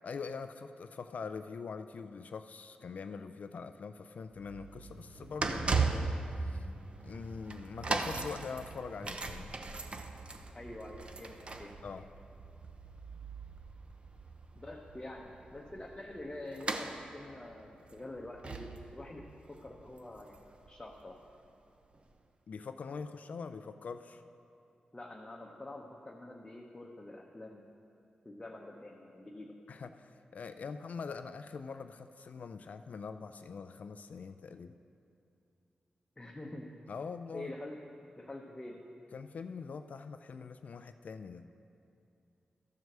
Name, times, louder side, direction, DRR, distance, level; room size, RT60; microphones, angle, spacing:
voice 1, 0.0-6.7 7.0-9.6 11.8-12.1 22.5-24.2 29.7-34.8 36.9-37.5 39.1-41.5, left 5 dB, 65° left, 9 dB, 0.3 m, -43 dB
sound 1, 4.3-21.3 21.9-22.0, right 3 dB, 40° right, 0.6 m, -39 dB
voice 2, 10.5-11.8 14.5-20.4 20.7-21.2 24.9-27.7 28.2-29.6 36.2-36.9 37.3-37.8 38.2-38.8, left 1 dB, 20° left, -1 dB, 0.8 m, -46 dB
13.0 x 4.6 x 6.6 m, 2.6 s
cardioid pair, 75°, 3 cm